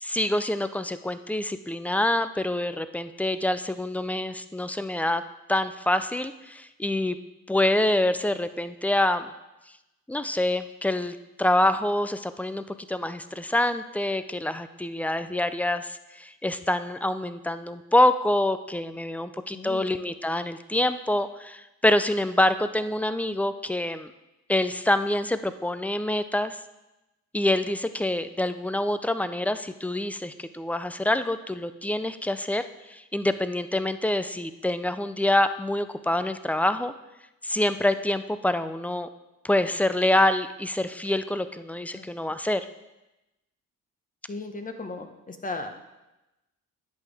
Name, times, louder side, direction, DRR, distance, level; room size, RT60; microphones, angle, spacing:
voice 1, 0.0-5.2 5.5-7.2 7.5-9.3 10.1-24.1 24.5-26.6 27.3-32.6 32.9-36.9 37.4-39.1 39.4-42.6, left 1 dB, 5° left, 12 dB, 0.4 m, -26 dB
voice 2, 19.5-19.8 41.9-42.1 44.3-45.7, left 3 dB, 25° left, 6 dB, 1.1 m, -36 dB
10.5 x 8.3 x 3.5 m, 0.98 s
cardioid pair, 90°, 30 cm